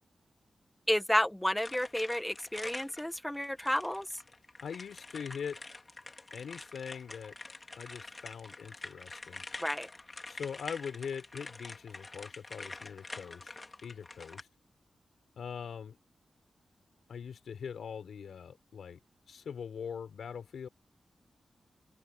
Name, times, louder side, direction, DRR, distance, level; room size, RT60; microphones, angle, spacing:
voice 1, 0.9-4.1 9.6-9.9, left 1 dB, 5° left, 1.3 m, -31 dB
sound 1, 1.6-14.4, left 2 dB, 30° left, 3.0 m, -47 dB
voice 2, 4.6-5.6 6.3-7.3 7.8-9.4 10.3-13.5 13.8-14.5 15.4-16.0 17.1-19.0 19.3-20.7, left 7 dB, 85° left, 4.5 m, -42 dB
open air
wide cardioid pair, 100°, 0 cm